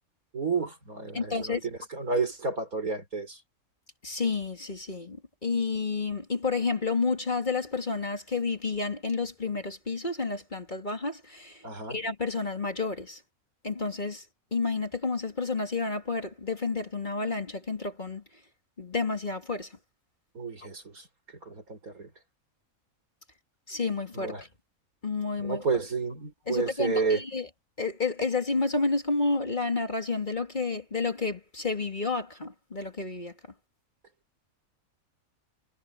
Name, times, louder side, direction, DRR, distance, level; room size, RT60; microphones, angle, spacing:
voice 1, 0.3-3.4 11.6-12.0 20.3-21.0 21.5-22.1 24.1-24.4 25.4-27.2, right 4 dB, 75° right, 5.7 m, -31 dB
voice 2, 1.1-1.7 4.0-11.6 11.9-13.2 13.6-14.2 14.5-18.2 18.8-19.7 23.7-24.4 25.0-25.6 26.5-27.5 27.8-33.3, left 4 dB, 30° left, 2.7 m, -30 dB
omnidirectional pair, 1.5 m